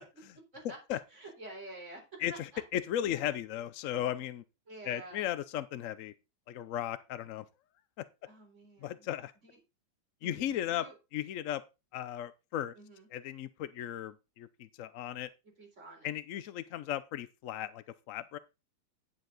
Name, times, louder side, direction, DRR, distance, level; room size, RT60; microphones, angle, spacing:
voice 1, 1.1-2.6 4.7-5.3 8.2-9.1 9.4-9.6 10.2-10.9 12.7-13.1 15.4-16.1, right 2 dB, 35° right, 4.6 m, -49 dB
voice 2, 2.7-4.4 4.9-6.1 6.5-7.4 8.8-9.3 10.2-10.9 11.1-11.6 11.9-12.7 13.1-14.5 14.8-15.3 16.0-18.4, left 11 dB, 80° left, 0.7 m, -36 dB
10.5 x 7.2 x 4.0 m
omnidirectional pair, 2.1 m